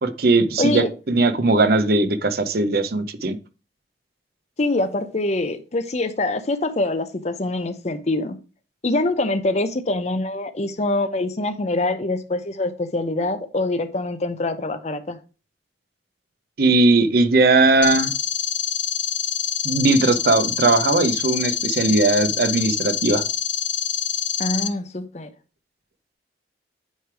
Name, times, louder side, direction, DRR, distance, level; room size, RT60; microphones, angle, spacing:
voice 1, 0.0-3.4 16.6-18.1 19.6-23.2, right 2 dB, 55° right, 0.7 m, -19 dB
voice 2, 0.6-0.9 4.6-8.4 8.8-15.2 24.4-25.3, left 2 dB, 35° left, 0.7 m, -24 dB
sound 1, 17.8-24.7, left 8 dB, 85° left, 0.6 m, -25 dB
9.1 x 3.3 x 4.6 m
head